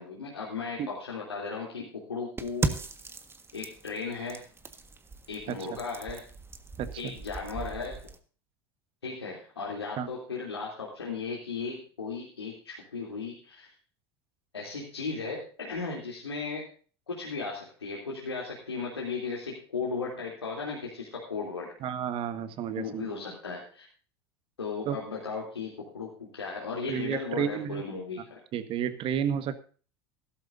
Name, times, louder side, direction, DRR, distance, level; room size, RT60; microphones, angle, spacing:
voice 1, 0.0-2.8 3.5-4.4 5.3-6.2 7.0-8.0 9.0-13.7 14.5-16.7 17.1-21.7 22.7-23.9 24.6-28.4, left 4 dB, 85° left, -4 dB, 3.1 m, -36 dB
sound 1, 2.4-8.2, right 3 dB, 20° right, 1.5 m, -37 dB
voice 2, 5.5-5.8 6.8-7.1 10.0-10.1 21.8-23.1 24.8-25.0 26.9-27.8 28.5-29.6, right 9 dB, 45° right, 12 dB, 1.5 m, -31 dB
16.0 x 13.0 x 2.7 m, 0.40 s
figure-of-eight pair, 75°, 13 cm